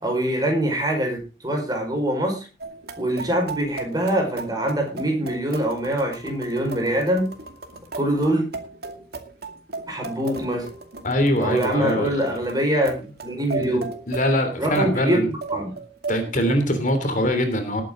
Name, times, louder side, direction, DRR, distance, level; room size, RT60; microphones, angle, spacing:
voice 1, 0.0-2.5 3.0-7.3 7.9-8.4 9.9-10.7 11.4-12.9 13.2-13.9 14.6-15.7, right 1 dB, 20° right, 3 dB, 5.1 m, -24 dB
sound 1, 2.6-17.0, right 4 dB, 60° right, 2.3 m, -36 dB
voice 2, 11.0-12.1 13.6-13.8 14.1-15.3 16.1-17.8, equal, 45° left, 7 dB, 3.1 m, -22 dB
19.5 x 9.1 x 3.8 m, 0.31 s
head